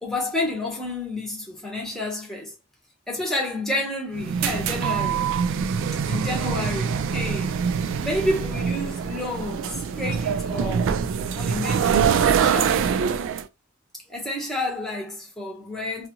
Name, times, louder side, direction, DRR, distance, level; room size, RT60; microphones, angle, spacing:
voice 1, 0.0-2.5 3.1-5.3 6.1-7.6 8.0-11.1 11.3-12.7 14.1-16.1, left 1 dB, ahead, 0.9 m, -30 dB
sound 1, 4.1-13.4, right 7 dB, 65° right, 0.3 m, -24 dB
2.6 x 2.4 x 2.8 m
head